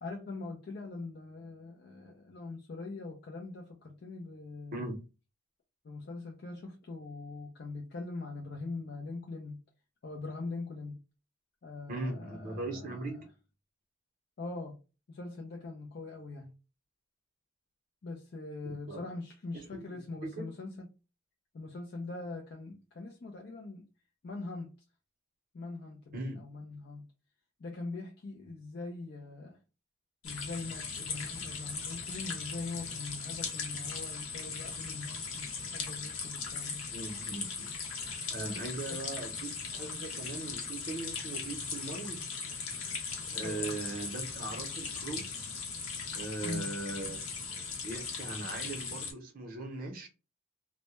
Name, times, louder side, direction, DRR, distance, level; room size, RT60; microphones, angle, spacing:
voice 1, 0.0-4.8 5.8-9.6 10.0-11.0 11.6-13.1 14.4-14.8 15.1-16.5 18.0-20.9 21.5-23.8 24.2-24.7 25.5-27.1 27.6-29.6 30.2-36.8 38.9-39.0 43.4-43.7 46.4-46.8, left 3 dB, 50° left, 0.4 m, -42 dB
voice 2, 11.9-13.3 18.9-19.0 19.5-20.5 26.1-26.5 36.9-37.7 38.3-42.2 43.3-45.3 46.1-47.2 47.4-50.1, right 2 dB, 40° right, 0.7 m, -39 dB
sound 1, 30.2-49.1, left 5 dB, 75° left, 0.7 m, -39 dB
2.1 x 2.1 x 2.9 m
head